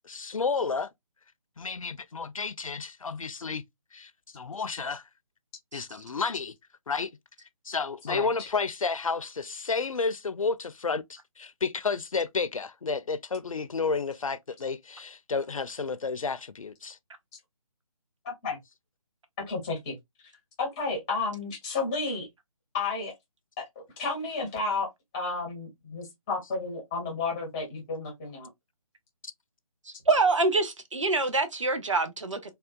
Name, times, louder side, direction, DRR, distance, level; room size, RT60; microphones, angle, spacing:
voice 1, 0.1-0.9 1.6-3.6 3.9-5.0 5.7-6.5 6.9-7.1 7.7-17.0, left 4 dB, 65° left, 0.4 m, -31 dB
voice 2, 8.1-8.5 18.2-18.6 19.5-20.0 20.6-22.3 22.7-23.1 23.6-24.9 25.1-28.5, left 3 dB, 5° left, 0.5 m, -32 dB
voice 3, 30.1-32.5, right 3 dB, 55° right, 0.8 m, -25 dB
3.5 x 2.2 x 2.3 m
figure-of-eight pair, 145°, 19 cm